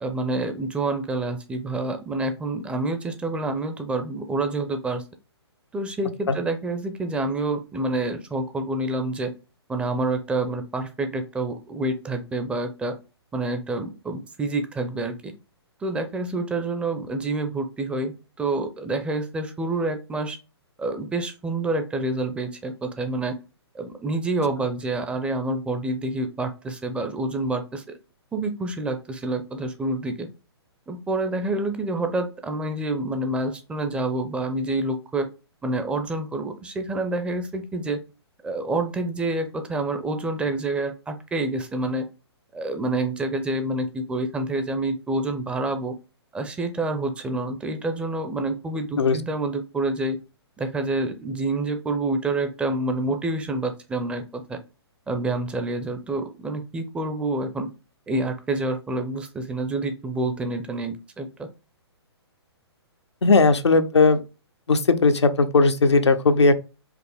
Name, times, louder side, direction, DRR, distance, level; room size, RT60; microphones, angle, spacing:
voice 1, 0.0-5.0 5.7-9.3 9.7-12.9 13.3-15.3 15.8-20.4 20.8-23.4 23.7-27.8 28.3-30.3 30.9-35.3 35.6-38.0 38.4-42.1 42.5-45.9 46.3-50.2 50.6-54.6 55.1-57.7 58.1-61.5, right 2 dB, 10° right, 0.5 m, -27 dB
voice 2, 63.2-64.2 64.7-66.5, left 3 dB, 85° left, 0.6 m, -17 dB
5.0 x 3.1 x 3.4 m
hypercardioid pair, 130°, 14 cm